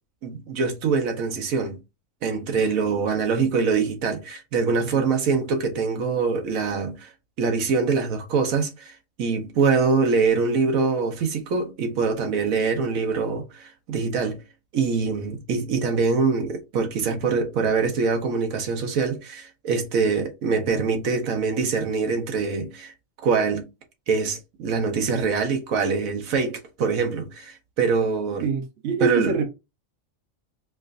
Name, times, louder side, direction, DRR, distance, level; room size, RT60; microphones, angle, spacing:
voice 1, 0.2-1.8 2.2-7.1 7.4-14.4 14.7-22.9 23.2-23.7 24.1-28.5 29.0-29.4, right 5 dB, 75° right, 1.2 m, -24 dB
voice 2, 28.4-29.4, right 5 dB, 60° right, 1.0 m, -25 dB
4.7 x 2.4 x 2.4 m
omnidirectional pair, 1.4 m